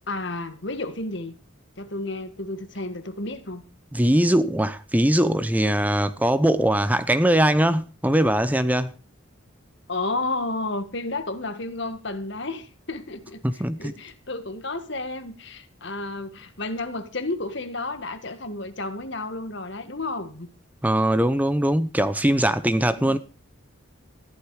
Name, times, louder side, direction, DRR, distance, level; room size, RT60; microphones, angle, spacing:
voice 1, 0.1-1.4 1.8-3.6 9.9-13.4 13.8-20.5 23.0-23.2, left 2 dB, 55° left, 1.8 m, -31 dB
voice 2, 3.9-8.9 13.4-13.9 20.8-23.2, right 1 dB, 5° right, 0.7 m, -21 dB
14.5 x 12.0 x 4.9 m
head